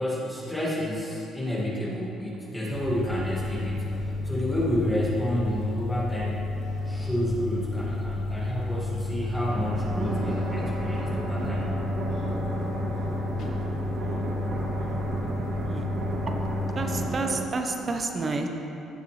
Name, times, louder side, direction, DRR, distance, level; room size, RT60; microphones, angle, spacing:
voice 1, 0.0-6.5 6.9-11.7, equal, 5° left, -6 dB, 2.0 m, -30 dB
sound 1, 2.7-17.1, left 2 dB, 65° left, 1.1 m, -31 dB
sound 2, 9.4-17.4, right 3 dB, 65° right, 1.5 m, -33 dB
voice 2, 14.0-14.3 14.8-15.0 15.6-15.9 16.3-16.4 16.7-18.5, right 3 dB, 35° right, 4 dB, 1.0 m, -31 dB
16.0 x 6.8 x 3.3 m, 2.9 s
cardioid pair, 90°, 0 cm